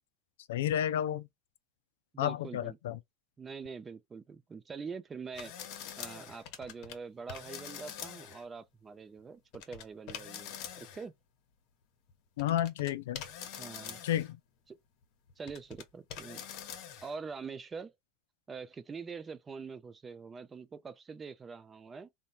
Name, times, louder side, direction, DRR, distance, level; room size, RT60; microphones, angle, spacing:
voice 1, 0.5-1.3 2.2-3.0 12.4-13.2 14.0-14.4, left 11 dB, 90° left, 0.3 m, -31 dB
voice 2, 2.1-3.0 3.4-11.1 13.6-14.0 14.7-14.8 15.4-16.5 17.0-17.9 18.5-22.1, right 5 dB, 25° right, 0.5 m, -44 dB
sound 1, 5.3-6.9 7.3-8.4 9.5-11.1 12.1-12.2 12.4-14.3 15.0-15.8 16.1-17.2, left 8 dB, 60° left, 0.8 m, -44 dB
3.0 x 2.2 x 2.5 m
supercardioid pair, 110°, 0 cm